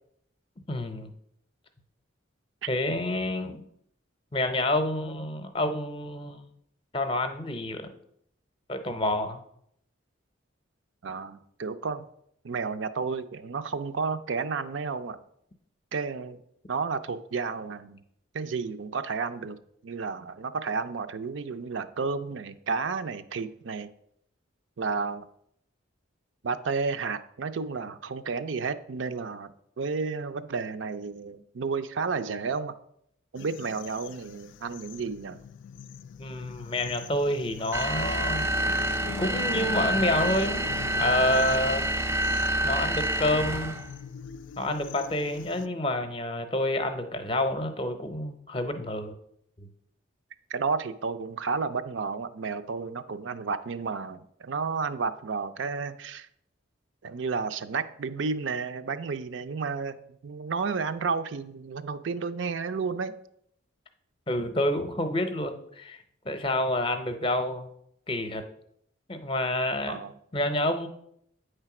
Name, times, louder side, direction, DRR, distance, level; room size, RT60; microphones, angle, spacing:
voice 1, 0.7-1.1 2.7-3.6 4.3-6.5 6.9-7.9 8.7-9.4 36.2-38.4 39.2-41.9 42.6-43.8 44.6-49.2 49.6-49.7 64.3-66.0 66.2-67.7 68.1-68.4 69.1-70.0 70.3-70.9, left 1 dB, 25° left, 8 dB, 0.6 m, -28 dB
voice 2, 11.0-12.0 12.4-15.2 15.9-16.4 16.7-18.0 18.3-19.6 19.8-23.9 24.8-25.3 26.4-32.8 33.3-35.4 50.5-56.3 57.0-63.1 69.9-70.1, right 5 dB, 70° right, 10 dB, 0.5 m, -32 dB
sound 1, 33.3-45.7, left 6 dB, 70° left, 0.3 m, -42 dB
sound 2, 37.7-43.9, right 1 dB, 15° right, 0.3 m, -27 dB
8.9 x 3.3 x 5.9 m, 0.72 s
head